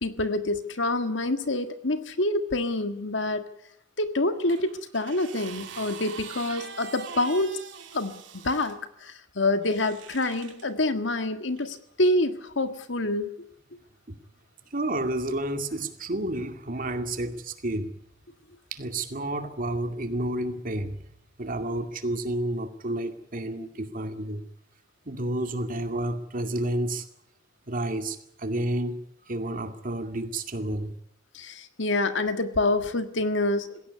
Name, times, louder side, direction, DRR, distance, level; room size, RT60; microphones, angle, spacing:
voice 1, 0.0-3.5 4.0-7.6 7.9-13.3 31.3-33.9, left 2 dB, 70° left, 1.7 m, -27 dB
sound 1, 4.5-8.8 9.6-10.7 11.6-11.7, right 6 dB, 70° right, 2.6 m, -43 dB
voice 2, 14.7-17.9 18.7-21.0 21.4-24.4 25.1-27.1 27.7-29.0 29.2-30.9, right 1 dB, 45° right, 2.3 m, -30 dB
20.0 x 17.0 x 9.7 m
head